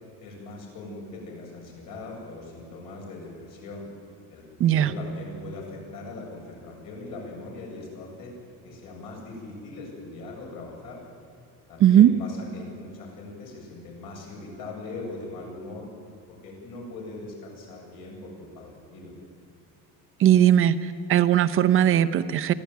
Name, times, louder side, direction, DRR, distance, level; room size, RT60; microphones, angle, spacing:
voice 1, 0.2-3.9 4.3-8.3 8.6-11.0 11.7-15.9 16.4-19.1, left 2 dB, 65° left, -1 dB, 7.9 m, -40 dB
voice 2, 4.6-4.9 11.8-12.1 20.2-22.5, right 11 dB, 35° right, 11 dB, 0.7 m, -18 dB
24.0 x 16.0 x 9.4 m, 2.4 s
cardioid pair, 175°, 35 cm